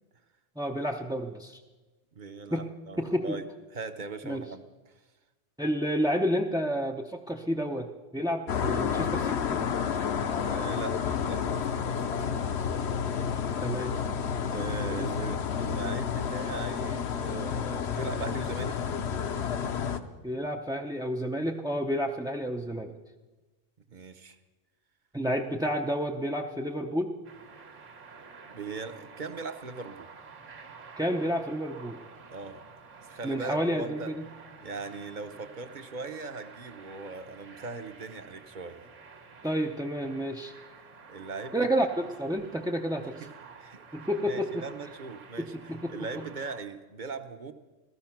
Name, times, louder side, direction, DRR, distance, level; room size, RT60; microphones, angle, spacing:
voice 1, 0.6-1.6 2.5-2.7 3.0-3.4 4.2-4.4 5.6-9.7 13.6-13.9 15.0-15.1 20.2-23.0 25.1-27.2 31.0-32.0 33.2-34.2 39.4-40.5 41.5-43.1 43.9-44.6 45.4-46.1, equal, 5° right, 2 dB, 0.4 m, -30 dB
voice 2, 2.1-3.4 3.7-4.9 10.4-12.3 14.5-18.8 23.9-24.4 28.5-30.1 32.3-32.6 33.0-34.1 34.6-38.8 41.1-41.7 43.2-43.3 43.6-43.9 44.2-47.5, right 4 dB, 45° right, 9 dB, 0.9 m, -39 dB
sound 1, 8.5-20.0, left 7 dB, 60° left, 1.0 m, -30 dB
sound 2, 27.2-46.6, right 5 dB, 75° right, 1.6 m, -50 dB
16.0 x 13.0 x 5.9 m, 1.2 s
omnidirectional pair, 1.3 m